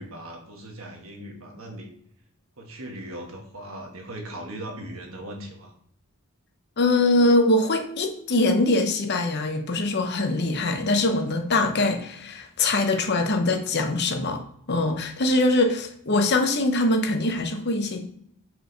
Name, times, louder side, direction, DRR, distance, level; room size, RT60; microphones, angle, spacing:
voice 1, 0.0-1.9 2.6-5.7, right 1 dB, 70° right, 2 dB, 1.4 m, -39 dB
voice 2, 6.8-18.1, left 2 dB, 50° left, 6 dB, 0.8 m, -23 dB
5.0 x 4.8 x 3.9 m, 0.69 s
head